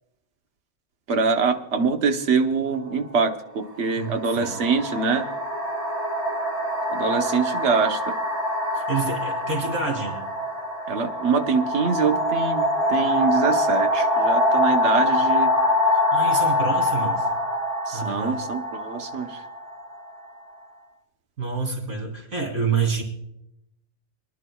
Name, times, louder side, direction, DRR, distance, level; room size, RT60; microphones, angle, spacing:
voice 1, 1.1-5.3 6.9-8.1 10.9-15.5 17.9-19.4, right 5 dB, 55° right, 5 dB, 1.2 m, -24 dB
sound 1, 2.7-2.9 3.8-20.5, left 1 dB, 30° right, 3.8 m, -24 dB
voice 2, 3.9-4.7 8.7-10.2 15.9-17.3 17.9-18.5 21.4-23.0, right 5 dB, 90° right, 0 dB, 3.7 m, -28 dB
28.0 x 11.0 x 2.3 m, 0.80 s
omnidirectional pair, 1.5 m